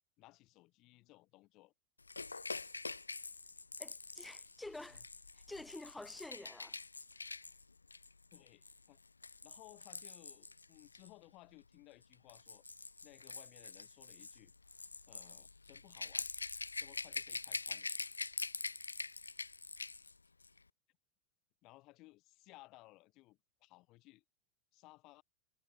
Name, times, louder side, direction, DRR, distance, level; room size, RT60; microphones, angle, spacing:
voice 1, 0.2-1.7 4.9-5.1 8.3-9.0 9.4-12.6 13.0-14.5 15.1-16.3 16.8-17.9 21.6-24.2 24.7-25.2, left 20 dB, 40° left, 3.4 m, -61 dB
Rattle / Rattle (instrument), 2.1-11.1 12.0-20.1 20.4-20.6, left 3 dB, 80° left, 0.4 m, -45 dB
voice 2, 3.8-5.0 5.5-6.7, left 2 dB, 5° left, 0.5 m, -49 dB
figure-of-eight pair, 90°, 0 cm